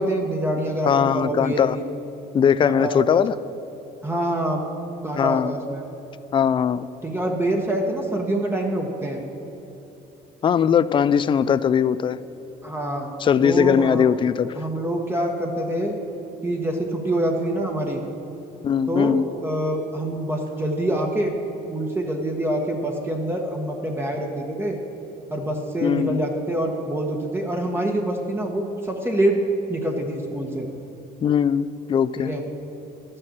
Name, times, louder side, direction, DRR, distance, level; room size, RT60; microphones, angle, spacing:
voice 1, 0.0-1.8 2.6-3.2 4.0-4.6 5.0-5.8 7.0-9.2 12.6-13.1 13.4-14.1 14.5-15.9 16.4-18.0 18.9-21.3 21.7-24.8 25.3-29.4 29.7-30.7 32.2-32.4, right 1 dB, 15° right, 1 dB, 1.2 m, -25 dB
voice 2, 0.9-1.8 2.3-3.3 5.2-5.5 6.3-6.9 10.4-12.2 13.2-14.5 18.6-19.3 25.8-26.2 31.2-32.3, left 7 dB, 30° left, 16 dB, 0.3 m, -20 dB
12.0 x 6.6 x 7.4 m, 2.9 s
cardioid pair, 110°, 17 cm